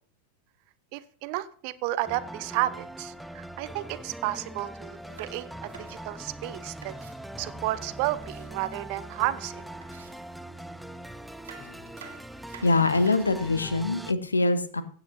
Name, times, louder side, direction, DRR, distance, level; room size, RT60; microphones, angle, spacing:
voice 1, 0.9-6.9 7.4-9.6, right 16 dB, 45° right, 14 dB, 0.6 m, -32 dB
sound 1, 2.1-14.1, right 1 dB, ahead, 0.4 m, -42 dB
sound 2, 3.6-3.9 5.0-5.6 6.5-6.6 7.0-8.5 9.0-9.2 9.4-9.6 10.3-10.7 11.6-13.4, left 2 dB, 25° left, 3.0 m, -53 dB
sound 3, 4.9-7.2 7.8-9.1 9.3-9.4 9.8-10.8 11.2-13.4, right 7 dB, 60° right, 1.9 m, -51 dB
voice 2, 12.6-14.8, left 3 dB, 75° left, 13 dB, 0.9 m, -24 dB
16.0 x 8.9 x 2.7 m, 0.43 s
figure-of-eight pair, 90°, 0 cm